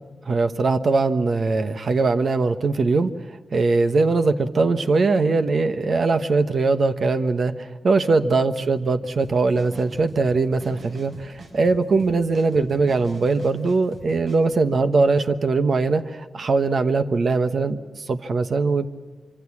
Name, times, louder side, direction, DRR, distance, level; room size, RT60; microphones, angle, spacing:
voice 1, 0.3-3.1 3.5-17.8 18.1-18.9, right 3 dB, 55° right, 9 dB, 1.1 m, -21 dB
sound 1, 9.2-14.4, right 2 dB, 70° right, 6.0 m, -42 dB
25.0 x 25.0 x 7.3 m, 1.3 s
wide cardioid pair, 145°, 0 cm